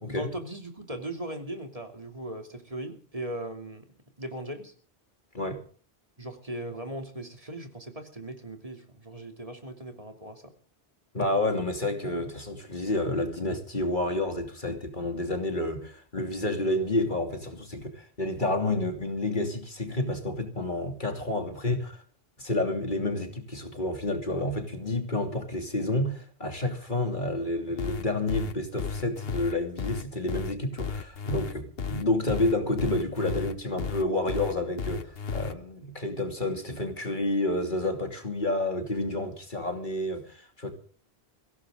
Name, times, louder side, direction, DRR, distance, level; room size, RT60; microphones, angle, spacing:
voice 1, 0.1-3.9 4.2-4.7 6.2-10.5, right 1 dB, 35° right, 3.0 m, -38 dB
voice 2, 11.1-22.0 22.4-40.7, left 2 dB, 50° left, 3.0 m, -29 dB
sound 1, 27.8-35.5, left 5 dB, 65° left, 1.4 m, -33 dB
22.5 x 17.0 x 3.8 m
omnidirectional pair, 1.1 m